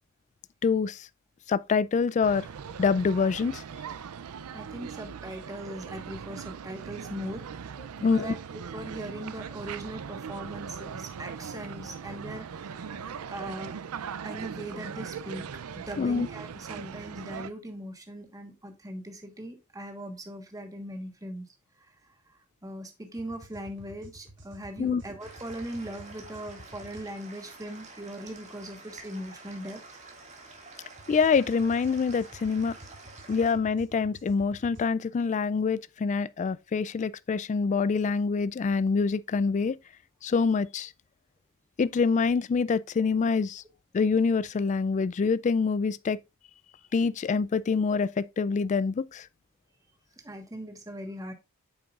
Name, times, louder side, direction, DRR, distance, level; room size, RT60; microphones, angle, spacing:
voice 1, 0.6-1.1 1.5-2.5 2.8-3.6 8.0-8.3 16.0-16.3 24.8-25.0 31.1-32.7 33.3-39.8 40.2-40.9 41.8-43.6 43.9-46.2 46.9-49.3, left 5 dB, 35° left, 0.3 m, -26 dB
sound 1, 2.2-17.5, right 7 dB, 85° right, 0.5 m, -40 dB
voice 2, 4.5-7.4 8.0-13.0 13.3-13.8 14.2-21.4 21.8-22.0 22.3-29.8 50.2-51.3, right 1 dB, 15° right, 1.3 m, -40 dB
sound 2, 23.2-27.1 31.0-34.9, right 1 dB, 55° right, 2.3 m, -50 dB
sound 3, 25.2-33.5, right 3 dB, 30° right, 2.0 m, -48 dB
8.7 x 6.9 x 2.4 m
head